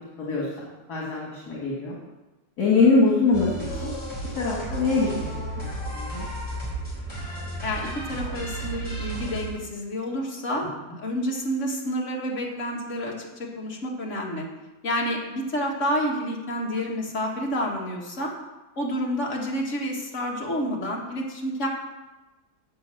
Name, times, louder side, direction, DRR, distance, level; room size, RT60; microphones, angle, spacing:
voice 1, 0.2-2.0 2.6-3.5 3.8-3.9 4.4-6.3, left 3 dB, 70° left, -4 dB, 2.2 m, -23 dB
sound 1, 3.3-9.5, right 1 dB, 15° left, 3.5 m, -33 dB
voice 2, 7.6-14.5 14.8-18.3 18.8-21.7, equal, 50° left, -1 dB, 2.0 m, -29 dB
7.5 x 5.7 x 7.6 m, 1.1 s
omnidirectional pair, 1.7 m